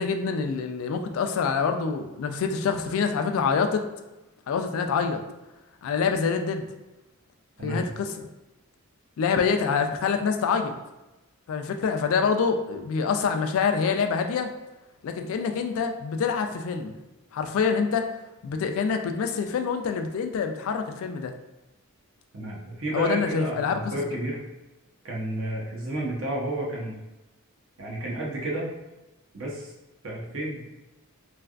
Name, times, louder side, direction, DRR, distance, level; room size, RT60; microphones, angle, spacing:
voice 1, 0.0-3.8 4.5-5.2 5.8-6.7 7.6-8.3 9.2-10.7 11.5-14.5 15.0-16.9 17.3-18.1 18.4-21.3 22.9-24.0, left 5 dB, 70° left, 6 dB, 0.3 m, -26 dB
voice 2, 22.3-24.4 25.0-27.0 27.8-28.7 29.3-29.7 30.0-30.6, right 1 dB, 60° right, -3 dB, 0.8 m, -31 dB
3.3 x 2.3 x 2.4 m, 1.0 s
head